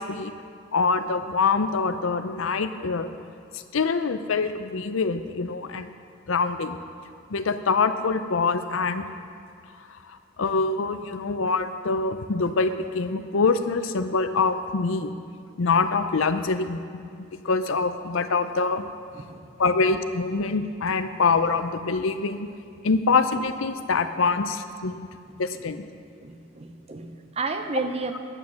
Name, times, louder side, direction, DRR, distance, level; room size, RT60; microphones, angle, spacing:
voice 1, 0.7-3.1 3.7-5.9 6.3-6.8 7.3-9.0 10.4-15.1 15.6-17.0 17.4-18.8 19.6-22.5 22.8-25.1 25.4-25.8, left 4 dB, 75° left, 10 dB, 0.6 m, -24 dB
voice 2, 19.1-19.7 24.9-25.0 25.3-25.4 26.2-28.2, right 3 dB, 30° right, 6 dB, 0.6 m, -32 dB
11.0 x 8.3 x 6.4 m, 2.3 s
head